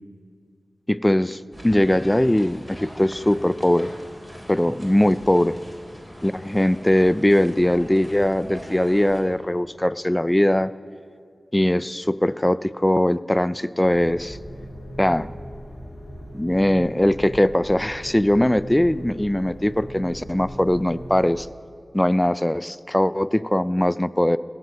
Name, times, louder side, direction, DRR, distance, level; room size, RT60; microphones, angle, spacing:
voice 1, 0.9-3.9 4.5-5.6 6.2-10.7 11.5-14.4 15.0-15.3 16.3-21.5 21.9-24.4, left 1 dB, 15° left, 17 dB, 0.4 m, -20 dB
sound 1, 1.5-9.2, equal, ahead, 3.7 m, -41 dB
sound 2, 13.8-21.2, equal, 70° left, 3.3 m, -39 dB
13.5 x 9.6 x 7.8 m, 2.4 s
cardioid pair, 50°, 0 cm